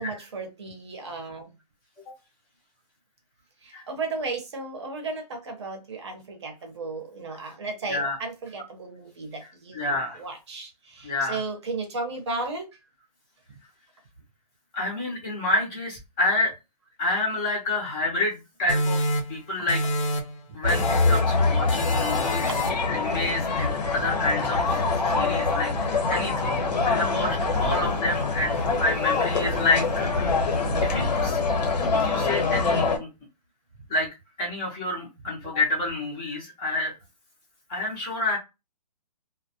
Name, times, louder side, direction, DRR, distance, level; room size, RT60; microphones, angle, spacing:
voice 1, 0.0-1.5 3.6-12.7 20.5-20.6 22.2-22.7 28.0-28.1, right 3 dB, 40° right, 3 dB, 0.7 m, -35 dB
voice 2, 9.7-10.2 11.0-11.4 14.7-16.5 17.0-19.0 19.3-19.8 20.5-22.5 22.9-25.7 26.1-26.6 26.8-30.0 30.8-31.4 32.0-33.1 33.9-34.1 34.4-36.9 37.7-38.4, left 2 dB, 10° left, -2 dB, 0.5 m, -28 dB
sound 1, 18.7-20.4 20.7-21.4 21.7-22.9, equal, 50° left, 0.6 m, -29 dB
sound 2, 20.6-33.0, left 3 dB, 85° left, 1.0 m, -24 dB
2.2 x 2.1 x 2.7 m, 0.25 s
hypercardioid pair, 170°, 21 cm